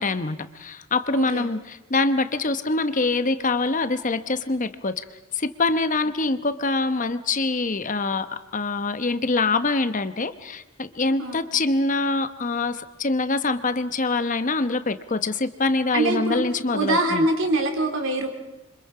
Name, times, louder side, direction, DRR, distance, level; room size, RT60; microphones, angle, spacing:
voice 1, 0.0-5.0 5.3-17.3, left 3 dB, 40° left, 11 dB, 1.0 m, -24 dB
voice 2, 1.2-1.5 11.2-11.4 15.9-16.4 16.7-18.3, right 2 dB, 65° right, 4 dB, 3.6 m, -24 dB
28.0 x 25.5 x 4.9 m, 0.98 s
head